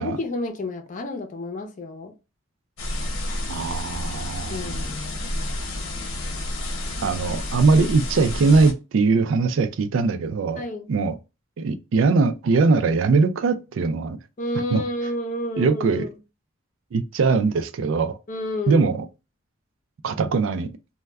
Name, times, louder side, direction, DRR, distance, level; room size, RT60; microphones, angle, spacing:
voice 1, 0.0-2.1 4.5-5.5 7.7-7.9 10.6-10.9 14.4-16.2 18.3-18.9, left 1 dB, 40° left, 0.5 m, -30 dB
sound 1, 2.8-8.7, left 1 dB, 90° left, 0.8 m, -30 dB
voice 2, 3.5-4.7 7.0-10.6 10.9-11.1 11.6-14.2 14.7-14.8 15.6-16.1 16.9-18.2 18.7-19.0 20.0-20.7, right 4 dB, 75° right, 0.4 m, -21 dB
2.2 x 2.1 x 3.4 m
head